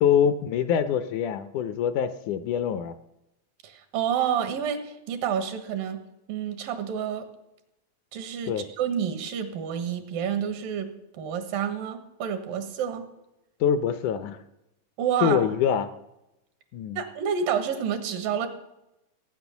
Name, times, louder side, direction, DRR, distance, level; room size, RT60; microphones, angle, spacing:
voice 1, 0.0-3.0 8.5-8.7 13.6-14.4 15.2-15.9 16.7-17.0, left 8 dB, 75° left, 11 dB, 1.9 m, -24 dB
voice 2, 3.6-6.0 6.3-7.3 8.1-13.0 15.0-15.5 17.0-18.5, right 8 dB, 85° right, 8 dB, 3.1 m, -29 dB
16.5 x 9.4 x 7.0 m, 0.91 s
omnidirectional pair, 3.9 m